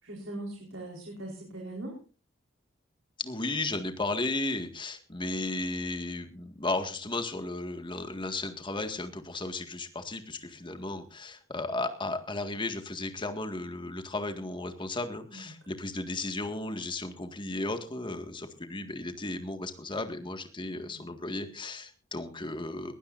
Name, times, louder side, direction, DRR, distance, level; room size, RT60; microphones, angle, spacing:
voice 1, 0.0-2.0 15.3-15.5 20.7-21.0, right 1 dB, 85° right, -1 dB, 4.4 m, -41 dB
voice 2, 3.2-22.9, left 2 dB, 25° left, 7 dB, 1.9 m, -34 dB
21.5 x 16.0 x 2.6 m, 0.34 s
head